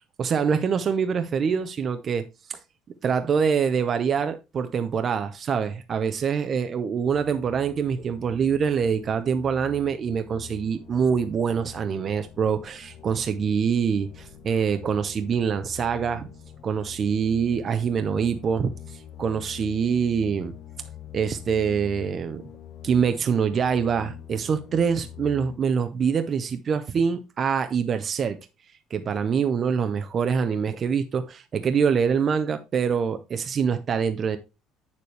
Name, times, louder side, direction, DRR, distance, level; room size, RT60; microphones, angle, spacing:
voice 1, 0.2-2.6 3.0-16.3 16.6-20.5 21.1-22.4 22.8-28.4 28.9-34.4, right 6 dB, 35° right, 0.6 m, -25 dB
sound 1, 7.0-25.6, left 10 dB, 60° left, 1.1 m, -45 dB
8.2 x 6.9 x 3.2 m
cardioid pair, 145°, 0 cm